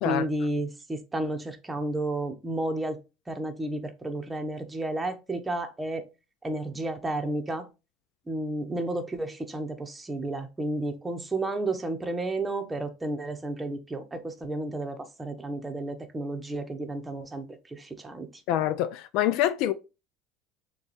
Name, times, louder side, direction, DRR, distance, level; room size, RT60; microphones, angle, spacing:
voice 1, 0.0-3.0 3.3-6.0 6.4-7.6 8.3-18.3, right 2 dB, 15° right, 0.9 m, -32 dB
voice 2, 18.5-19.7, left 12 dB, 65° left, 0.3 m, -25 dB
6.5 x 2.3 x 3.0 m
hypercardioid pair, 80°, 0 cm